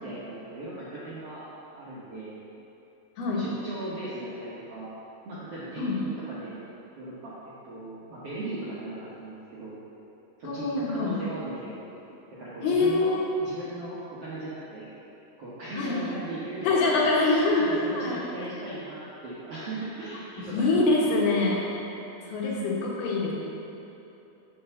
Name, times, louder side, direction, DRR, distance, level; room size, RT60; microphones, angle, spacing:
voice 1, 0.0-1.4 1.7-2.4 3.3-4.9 5.2-6.6 6.9-9.8 10.4-11.8 12.4-14.9 15.4-17.5 17.8-20.9 21.5-21.6, right 2 dB, 65° right, -9 dB, 1.5 m, -38 dB
voice 2, 10.4-11.2 12.6-13.3 15.8-16.0 16.6-18.5 20.5-21.7 22.3-23.3, left 3 dB, 80° left, -4 dB, 3.3 m, -25 dB
9.5 x 4.5 x 7.0 m, 3.0 s
omnidirectional pair, 4.4 m